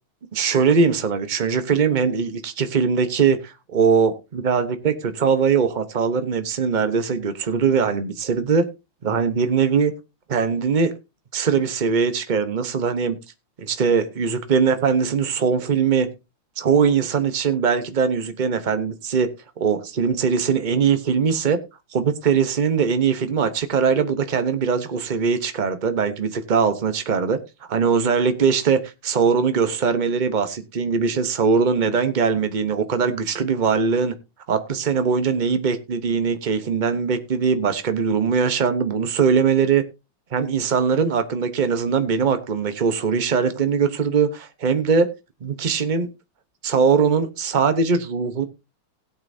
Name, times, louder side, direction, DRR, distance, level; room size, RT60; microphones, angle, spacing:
voice 1, 0.3-8.7 9.0-9.9 10.3-10.9 11.3-13.2 13.6-16.1 16.6-19.3 19.6-21.6 21.9-27.4 27.7-34.1 34.5-39.8 40.3-45.1 45.4-46.1 46.6-48.4, right 6 dB, 70° right, 9 dB, 0.4 m, -21 dB
17.0 x 8.8 x 2.6 m, 0.26 s
omnidirectional pair, 2.3 m